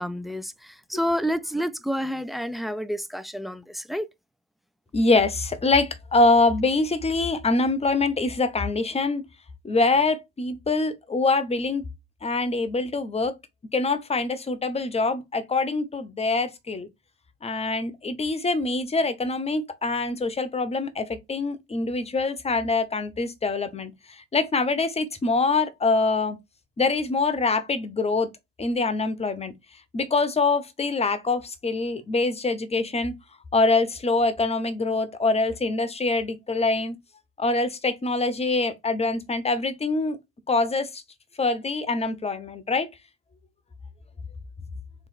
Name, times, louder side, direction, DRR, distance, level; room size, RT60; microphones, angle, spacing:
voice 1, 0.0-4.1, equal, ahead, 0.4 m, -29 dB
voice 2, 4.9-9.2 9.6-11.8 12.2-13.3 13.7-16.9 17.4-23.9 24.3-26.4 26.8-28.3 28.6-29.5 29.9-33.1 33.5-36.9 37.4-40.2 40.5-41.0 41.4-42.9, left 3 dB, 20° left, 0.9 m, -24 dB
3.7 x 3.2 x 4.0 m
hypercardioid pair, 70°, 34 cm